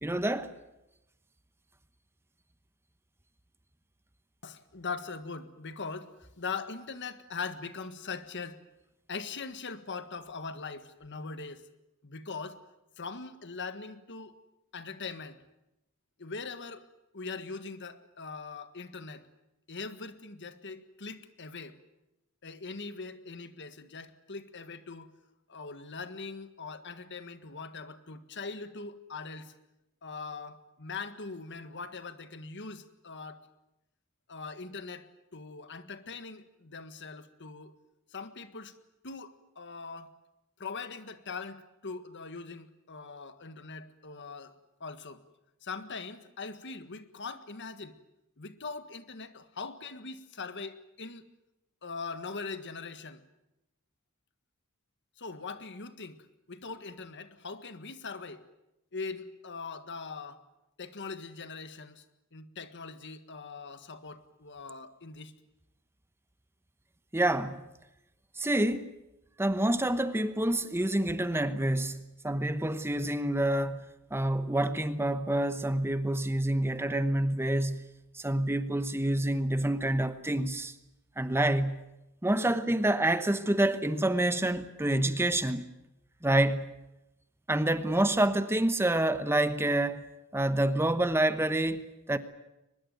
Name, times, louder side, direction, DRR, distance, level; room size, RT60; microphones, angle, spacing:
voice 1, 0.0-0.5 67.1-67.6 68.4-68.9 69.4-73.8 74.1-77.9 78.1-80.7 81.2-81.8 82.2-85.6 86.2-86.7 87.5-90.1 90.3-92.2, right 1 dB, 10° right, 1.0 m, -27 dB
voice 2, 4.4-8.6 9.1-11.7 12.0-12.6 13.0-14.3 14.7-15.4 16.2-16.9 17.1-19.3 19.7-21.8 22.4-25.1 25.5-29.5 30.0-33.5 34.3-35.1 35.3-37.7 38.1-38.7 39.0-40.1 40.6-44.5 44.8-45.2 45.6-48.0 48.4-51.2 51.8-53.2 55.2-56.2 56.5-58.4 58.9-60.4 60.8-62.0 62.3-65.3, left 4 dB, 55° left, 1.7 m, -41 dB
23.5 x 21.0 x 9.3 m
head